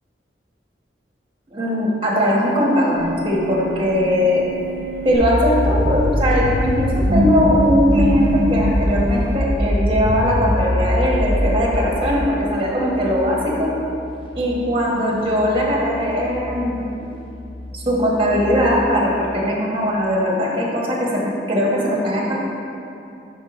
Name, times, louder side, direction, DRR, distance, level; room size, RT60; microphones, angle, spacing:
voice 1, 1.5-4.4 5.0-13.7 14.3-16.9 17.7-22.4, equal, 30° right, -3 dB, 1.1 m, -20 dB
sound 1, 3.0-9.4, equal, 80° right, 0.5 m, -25 dB
sound 2, 5.1-8.1 8.6-11.6, equal, 65° left, 0.8 m, -22 dB
sound 3, 8.2-18.9, left 1 dB, 30° left, 0.8 m, -35 dB
4.6 x 4.4 x 5.8 m, 2.7 s
head